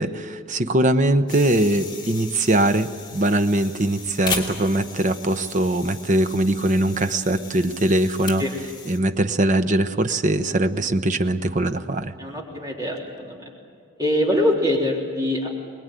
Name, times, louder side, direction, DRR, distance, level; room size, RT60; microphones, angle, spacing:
voice 1, 0.0-8.4 8.8-12.1, right 1 dB, 40° right, 9 dB, 0.9 m, -21 dB
sound 1, 1.3-9.0, left 4 dB, 25° left, 2.8 m, -36 dB
voice 2, 12.2-13.4 14.0-15.5, left 1 dB, 20° right, -2 dB, 3.6 m, -23 dB
23.5 x 21.0 x 9.2 m, 2.1 s
head